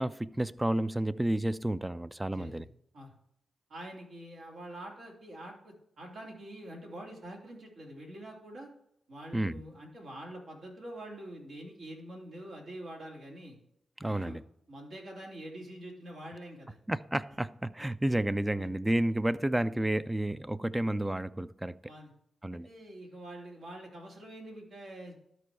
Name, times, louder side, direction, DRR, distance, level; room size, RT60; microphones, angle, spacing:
voice 1, 0.0-2.6 9.3-9.6 14.0-14.4 16.9-21.8 22.4-22.7, right 1 dB, 15° right, 0.4 m, -31 dB
voice 2, 2.3-2.7 2.9-3.1 3.7-8.7 9.1-13.6 14.0-14.4 14.7-16.8 18.6-18.7 21.8-22.1 22.6-25.2, right 1 dB, 70° right, 3.0 m, -45 dB
12.5 x 4.5 x 4.6 m
cardioid pair, 60°, 0 cm